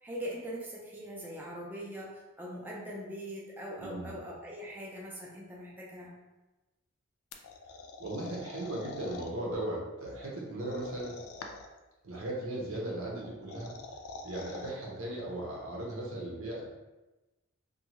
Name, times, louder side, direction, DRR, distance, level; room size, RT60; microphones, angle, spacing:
voice 1, 0.0-6.2, equal, 10° right, -4 dB, 0.3 m, -41 dB
voice 2, 3.8-4.2 8.0-11.1 12.0-13.7 14.2-16.8, right 1 dB, 90° right, -4 dB, 0.8 m, -37 dB
sound 1, 7.3-9.3 10.6-11.8 13.2-14.7, left 3 dB, 90° left, 0.3 m, -45 dB
2.6 x 2.2 x 2.9 m, 1.1 s
head